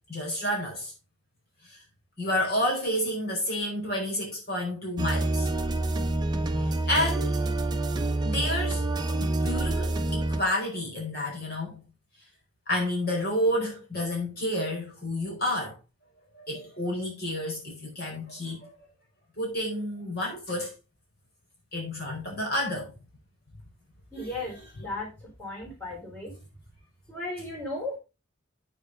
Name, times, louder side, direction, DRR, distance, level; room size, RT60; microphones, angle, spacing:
voice 1, 0.1-0.9 1.6-1.8 2.2-5.5 6.6-7.4 8.2-8.8 9.1-11.8 12.7-15.8 16.3-18.7 19.4-20.7 21.7-22.9 24.1-24.5, left 1 dB, 50° left, 4.6 m, -30 dB
sound 1, 5.0-10.4, right 2 dB, 20° right, 0.8 m, -27 dB
voice 2, 24.1-25.1 25.4-26.3 27.1-28.0, left 2 dB, 10° left, 5.2 m, -35 dB
9.1 x 7.1 x 4.0 m
head